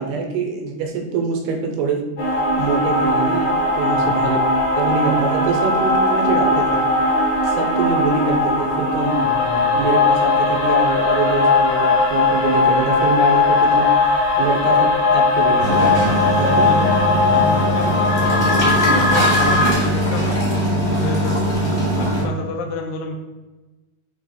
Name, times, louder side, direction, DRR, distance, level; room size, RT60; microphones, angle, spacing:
voice 1, 0.0-2.1 2.6-4.4 4.8-6.9 7.4-9.3 9.7-14.0 14.4-15.9 16.4-16.9 21.7-22.0, right 5 dB, 75° right, 3 dB, 2.5 m, -24 dB
sound 1, 2.2-19.7, left 3 dB, 40° left, 1.6 m, -18 dB
voice 2, 3.8-4.2 9.2-9.9 16.6-20.4 21.0-21.5 22.0-23.1, left 4 dB, 80° left, 2 dB, 3.5 m, -30 dB
sound 2, 15.6-22.2, equal, 20° left, 1.1 m, -20 dB
8.9 x 3.5 x 5.1 m, 1.1 s
omnidirectional pair, 5.4 m